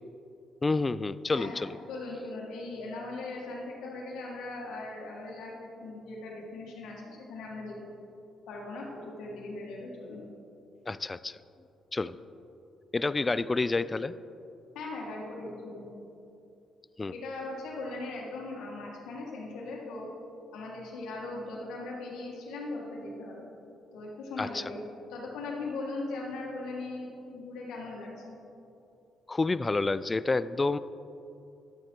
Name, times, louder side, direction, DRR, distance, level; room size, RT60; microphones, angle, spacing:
voice 1, 0.6-1.8 10.9-11.4 11.9-12.2 12.9-14.1 17.0-17.1 24.4-24.6 29.3-30.8, left 3 dB, 25° left, 16 dB, 0.3 m, -29 dB
voice 2, 1.3-5.5 5.8-7.9 8.5-10.2 14.7-15.9 17.1-20.1 20.5-23.5 23.9-24.8 25.1-28.3, left 2 dB, 85° left, -2 dB, 1.8 m, -39 dB
11.5 x 7.6 x 4.5 m, 2.7 s
cardioid pair, 90°, 0 cm